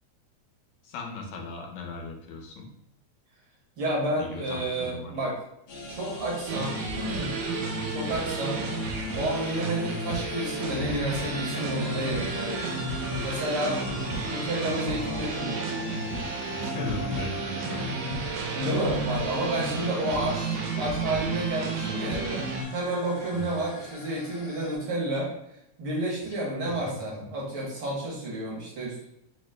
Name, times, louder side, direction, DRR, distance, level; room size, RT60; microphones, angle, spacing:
voice 1, 0.8-2.7 4.2-5.1 14.7-14.8 16.5-18.1 23.3-23.6 26.6-26.7, left 3 dB, 85° left, 1 dB, 2.2 m, -38 dB
voice 2, 3.8-5.4 5.9-7.3 7.9-8.6 9.1-12.8 13.2-13.8 14.2-15.7 18.5-25.3 25.8-29.0, right 1 dB, 60° right, -4 dB, 1.3 m, -30 dB
sound 1, 5.7-24.8, left 1 dB, 70° left, 1.3 m, -40 dB
sound 2, 6.5-22.6, right 3 dB, 85° right, 2.1 m, -32 dB
5.0 x 2.0 x 3.2 m, 0.80 s
omnidirectional pair, 3.3 m